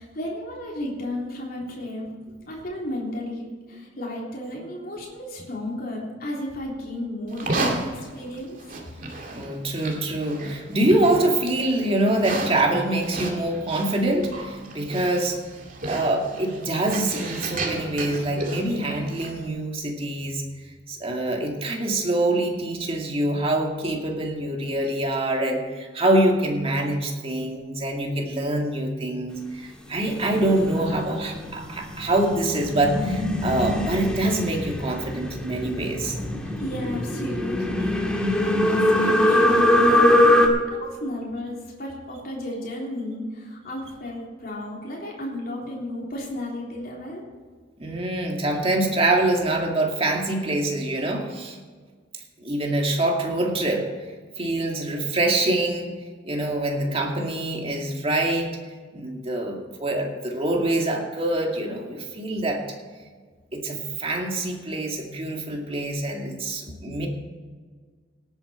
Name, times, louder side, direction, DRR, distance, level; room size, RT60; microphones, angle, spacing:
voice 1, 0.0-2.1 2.5-3.4 3.7-8.6 36.6-38.1 38.4-40.4 40.7-47.2, left 1 dB, 55° left, -3 dB, 3.4 m, -33 dB
Livestock farm animals working animals, 7.3-19.5, right 2 dB, 50° right, 2.3 m, -33 dB
voice 2, 9.3-15.4 15.8-20.4 20.9-36.2 47.8-51.6 52.4-53.9 54.4-55.9 56.2-58.5 58.9-62.6 63.5-67.1, right 1 dB, 30° right, 1 dB, 2.2 m, -25 dB
sound 1, 30.0-40.5, left 1 dB, 5° left, 1.7 m, -22 dB
18.0 x 8.9 x 4.4 m, 1.5 s
head